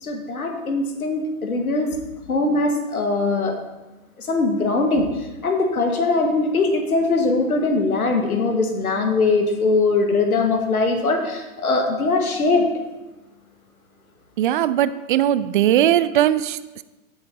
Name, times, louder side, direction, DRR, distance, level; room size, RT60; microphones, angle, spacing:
voice 1, 0.0-2.0 2.3-3.6 4.2-12.7, left 3 dB, 80° left, 4 dB, 1.8 m, -21 dB
voice 2, 14.4-16.8, right 12 dB, 40° right, 15 dB, 0.4 m, -19 dB
16.0 x 7.8 x 2.9 m, 1.1 s
figure-of-eight pair, 110°, 43 cm